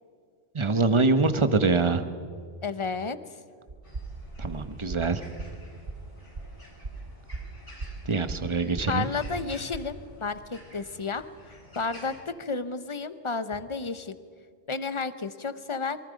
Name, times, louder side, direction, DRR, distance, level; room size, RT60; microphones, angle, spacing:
voice 1, 0.5-2.0 4.4-5.2 8.1-9.1, right 3 dB, 30° right, 9 dB, 1.1 m, -24 dB
voice 2, 2.6-3.2 8.9-11.3 11.7-14.2 14.7-16.0, left 4 dB, 30° left, 12 dB, 0.8 m, -32 dB
sound 1, 3.7-10.1, right 3 dB, 50° right, 1.7 m, -39 dB
sound 2, 3.8-12.2, left 1 dB, 50° left, 5.4 m, -50 dB
26.5 x 23.5 x 5.1 m, 2.1 s
omnidirectional pair, 1.1 m